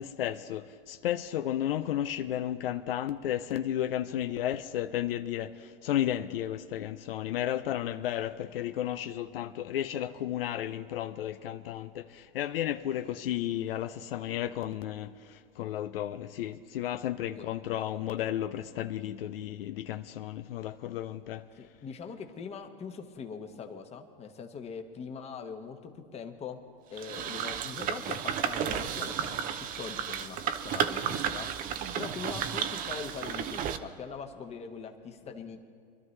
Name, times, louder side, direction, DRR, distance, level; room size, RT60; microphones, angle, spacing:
voice 1, 0.0-21.6, left 11 dB, 75° left, 0.6 m, -33 dB
voice 2, 21.6-26.6 26.9-29.4 29.8-31.5 31.7-35.7, left 6 dB, 20° left, 1.1 m, -42 dB
sound 1, 27.0-33.8, right 8 dB, 30° right, 0.6 m, -33 dB
24.0 x 12.0 x 3.2 m
hypercardioid pair, 120°, 29 cm